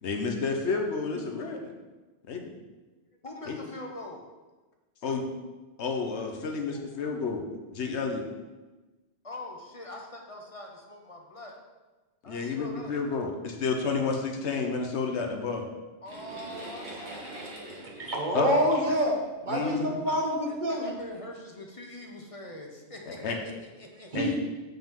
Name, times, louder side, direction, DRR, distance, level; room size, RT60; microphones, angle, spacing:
voice 1, 0.0-1.7 2.3-2.5 3.5-3.6 5.0-5.2 5.8-7.4 7.7-8.2 12.3-15.6 18.3-18.5 19.5-19.9 23.1-23.4 24.1-24.3, left 4 dB, 85° left, 3 dB, 1.2 m, -30 dB
voice 2, 3.1-4.3 6.7-7.4 7.9-8.0 9.2-11.5 12.2-12.9 16.0-17.3 19.5-20.2 20.5-24.4, left 1 dB, 35° left, 1 dB, 0.8 m, -43 dB
sound 1, 16.0-19.4 20.2-20.3 20.9-21.1, right 2 dB, 75° right, 1.8 m, -43 dB
voice 3, 17.7-19.2 19.4-20.9 24.1-24.4, equal, 45° right, -1 dB, 1.3 m, -27 dB
7.2 x 5.7 x 3.6 m, 1.2 s
omnidirectional pair, 1.1 m